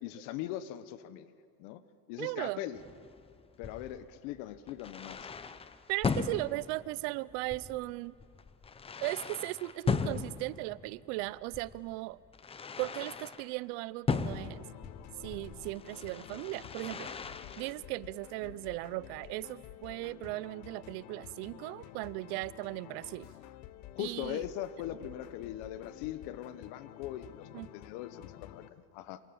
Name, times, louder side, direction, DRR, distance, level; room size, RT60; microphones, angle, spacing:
voice 1, 0.0-1.3 1.6-1.8 2.1-2.8 3.6-5.3 23.9-29.2, left 12 dB, 75° left, 13 dB, 1.4 m, -40 dB
voice 2, 2.2-2.6 5.9-8.1 9.0-12.2 12.8-14.6 15.2-17.1 17.6-23.3 24.0-24.4 27.5-27.7, right 21 dB, 80° right, 20 dB, 0.8 m, -37 dB
sound 1, 2.7-13.5 14.1-17.7, left 5 dB, 15° left, 0.8 m, -38 dB
sound 2, 14.4-28.7, left 13 dB, 55° left, 1.2 m, -51 dB
28.0 x 26.5 x 7.2 m, 2.2 s
cardioid pair, 145°, 34 cm